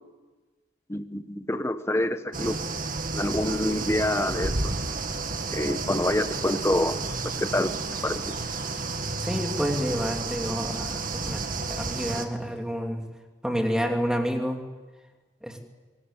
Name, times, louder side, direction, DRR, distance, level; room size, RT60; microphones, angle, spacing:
voice 1, 0.9-2.6 3.1-4.7 5.5-7.0 7.2-7.7 8.0-8.3, left 1 dB, 15° left, 9 dB, 1.2 m, -27 dB
sound 1, 2.3-12.2, right 3 dB, 45° right, 2.0 m, -31 dB
voice 2, 9.2-11.4 11.7-13.0 13.4-14.6 15.4-15.6, equal, 5° right, 2 dB, 3.0 m, -29 dB
25.5 x 18.0 x 9.2 m, 1.3 s
head